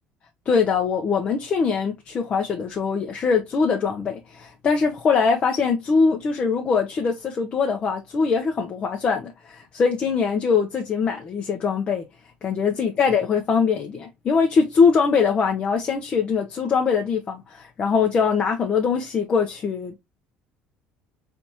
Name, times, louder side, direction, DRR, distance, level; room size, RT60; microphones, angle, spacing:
voice 1, 0.5-12.1 12.4-20.0, left 5 dB, 35° left, 0.7 m, -22 dB
4.2 x 3.4 x 2.9 m
cardioid pair, 145°, 3 cm